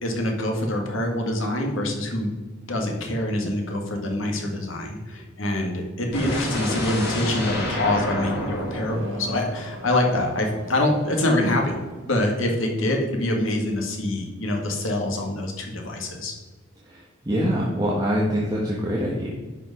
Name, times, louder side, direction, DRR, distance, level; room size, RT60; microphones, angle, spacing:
voice 1, 0.0-2.3 2.7-11.8 12.0-16.3, left 1 dB, 70° left, 2 dB, 1.9 m, -25 dB
sound 1, 6.1-10.1, equal, 55° left, 3.1 m, -30 dB
Car / Accelerating revving vroom, 7.3-12.2, right 1 dB, 65° right, 2.3 m, -41 dB
voice 2, 16.8-19.3, equal, 20° right, -5 dB, 1.3 m, -24 dB
10.5 x 5.3 x 4.9 m, 1.3 s
head